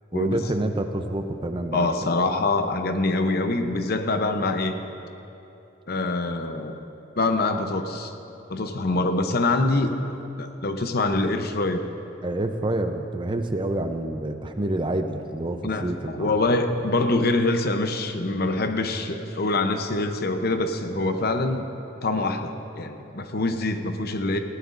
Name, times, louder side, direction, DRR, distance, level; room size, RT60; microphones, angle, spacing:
voice 1, 0.1-2.1 12.2-16.3, right 1 dB, 25° right, 6 dB, 0.6 m, -28 dB
voice 2, 1.7-4.7 5.9-6.8 7.2-8.1 8.5-10.0 10.4-11.8 15.6-21.7 22.0-24.4, left 2 dB, 50° left, 7 dB, 0.8 m, -24 dB
19.0 x 16.0 x 2.6 m, 2.9 s
head